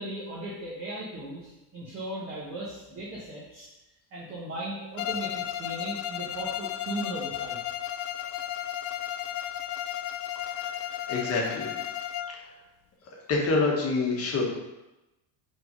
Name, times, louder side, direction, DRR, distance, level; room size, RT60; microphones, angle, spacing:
voice 1, 0.0-3.7 4.1-7.6, right 1 dB, 25° right, -6 dB, 1.2 m, -37 dB
Bowed string instrument, 5.0-12.4, left 12 dB, 65° left, 0.5 m, -34 dB
voice 2, 10.5-11.7 13.3-14.4, left 3 dB, 30° left, -2 dB, 1.3 m, -27 dB
5.7 x 3.8 x 5.2 m, 0.98 s
cardioid pair, 165°, 49 cm